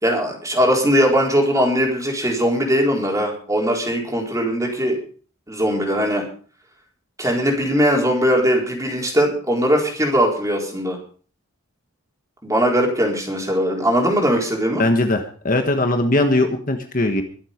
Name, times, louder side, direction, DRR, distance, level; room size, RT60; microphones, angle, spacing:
voice 1, 0.0-5.0 5.5-6.3 7.2-11.0 12.4-14.8, equal, 15° right, 0 dB, 4.1 m, -20 dB
voice 2, 14.8-17.2, left 2 dB, 40° left, 5 dB, 1.5 m, -19 dB
23.0 x 7.7 x 5.2 m, 0.42 s
head